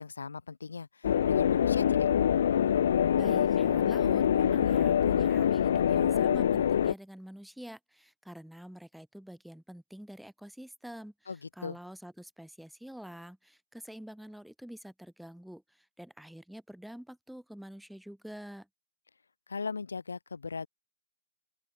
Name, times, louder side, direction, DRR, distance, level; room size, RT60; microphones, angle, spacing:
voice 1, 0.0-2.1 11.3-11.8 19.5-20.7, left 5 dB, 85° left, 0.8 m, -38 dB
sound 1, 1.0-6.9, left 9 dB, 60° left, 0.4 m, -25 dB
voice 2, 3.1-11.1 11.6-18.7, equal, ahead, 1.5 m, -47 dB
open air
hypercardioid pair, 140°, 0 cm